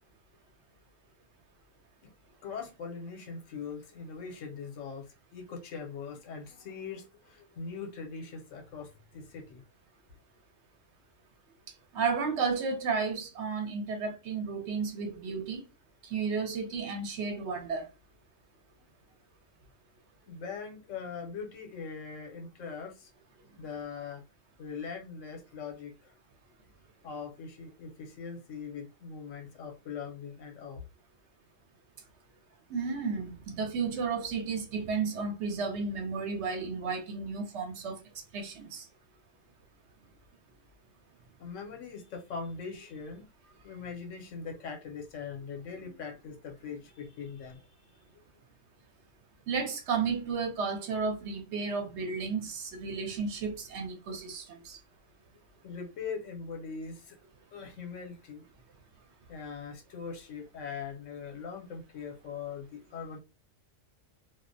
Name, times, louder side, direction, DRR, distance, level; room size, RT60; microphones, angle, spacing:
voice 1, 2.4-9.6 20.3-23.1 23.6-24.2 24.6-26.1 27.0-30.8 41.4-43.2 43.6-47.6 55.6-57.2 57.5-58.4 59.3-63.2, left 5 dB, 75° left, 1.0 m, -41 dB
voice 2, 11.9-15.6 16.1-17.9 32.7-38.0 38.3-38.8 49.5-54.8, right 5 dB, 65° right, 0.8 m, -33 dB
2.3 x 2.0 x 2.5 m
omnidirectional pair, 1.3 m